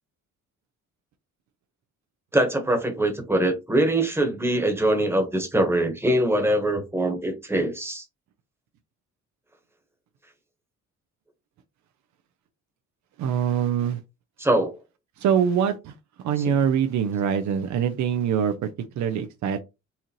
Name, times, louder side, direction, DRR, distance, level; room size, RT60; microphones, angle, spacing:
voice 1, 2.3-8.0 14.4-14.7 16.4-16.5, right 1 dB, 10° right, 1.2 m, -23 dB
voice 2, 13.2-14.0 15.2-15.9 16.2-18.5 19.0-19.6, right 8 dB, 70° right, 0.6 m, -23 dB
4.2 x 2.5 x 3.0 m
cardioid pair, 90°, 30 cm